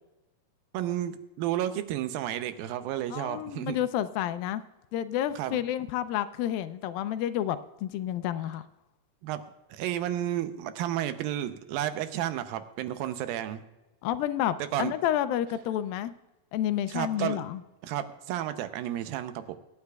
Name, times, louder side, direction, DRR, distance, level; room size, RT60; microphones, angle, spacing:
voice 1, 0.7-3.8 5.4-5.6 9.2-9.4 9.7-13.6 14.7-14.9 16.9-17.4 17.8-19.6, right 12 dB, 80° right, 10 dB, 2.4 m, -32 dB
voice 2, 3.1-4.6 4.9-8.7 14.0-16.1 16.5-17.6, left 11 dB, 80° left, 12 dB, 2.3 m, -30 dB
24.0 x 9.7 x 2.3 m, 1.0 s
omnidirectional pair, 4.3 m